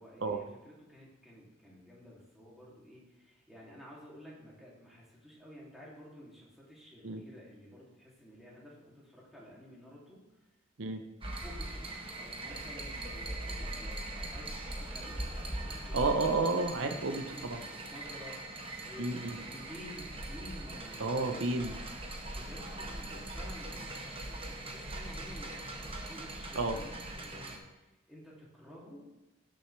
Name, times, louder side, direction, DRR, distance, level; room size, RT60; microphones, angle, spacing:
voice 1, 0.0-10.4 10.8-11.0 11.4-16.0 17.0-18.4 18.8-21.4 22.3-29.1, equal, ahead, -6 dB, 2.7 m, -52 dB
sound 1, 11.2-27.6, right 1 dB, 30° right, 1.2 m, -41 dB
voice 2, 15.9-17.6 19.0-19.4 21.0-21.7 26.6-26.8, right 3 dB, 80° right, 6 dB, 0.8 m, -31 dB
16.5 x 6.4 x 3.3 m, 0.98 s
head